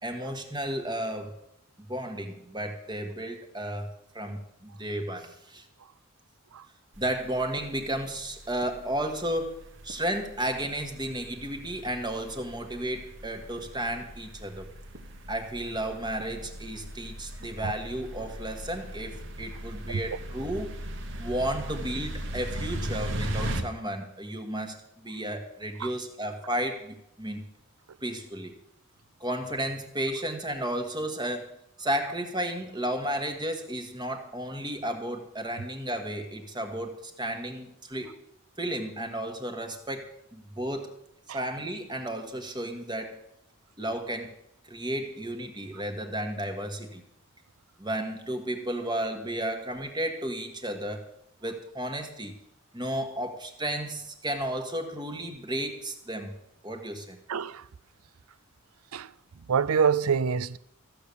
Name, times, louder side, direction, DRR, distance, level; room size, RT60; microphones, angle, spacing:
voice 1, 0.0-1.3 1.9-5.6 7.0-14.7 15.3-20.7 21.2-27.4 28.0-28.5 29.2-31.5 31.8-38.2 38.6-43.2 43.8-44.3 44.7-47.0 47.8-51.0 51.4-52.4 52.7-56.4 56.6-57.2, right 1 dB, 20° right, 1.5 m, -33 dB
sound 1, 6.9-23.6, right 1 dB, 55° right, 1.4 m, -39 dB
voice 2, 57.3-57.6 58.9-59.1 59.5-60.6, right 6 dB, 85° right, 0.5 m, -26 dB
14.5 x 6.7 x 8.5 m
head